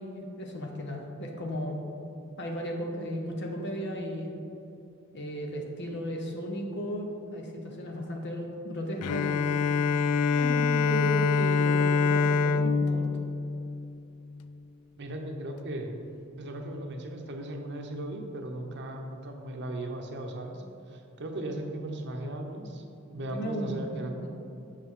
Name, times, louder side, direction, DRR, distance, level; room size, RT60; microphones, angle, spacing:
voice 1, 0.0-1.8 2.4-4.3 5.1-9.5 10.3-13.1 23.3-23.8 24.2-24.3, equal, 50° left, 1 dB, 1.0 m, -35 dB
Bowed string instrument, 9.0-14.5, left 4 dB, 85° left, 0.3 m, -25 dB
voice 2, 15.0-16.0 16.4-22.8 23.1-24.2, right 1 dB, 50° right, 3 dB, 0.8 m, -37 dB
8.5 x 6.5 x 3.7 m, 2.8 s
head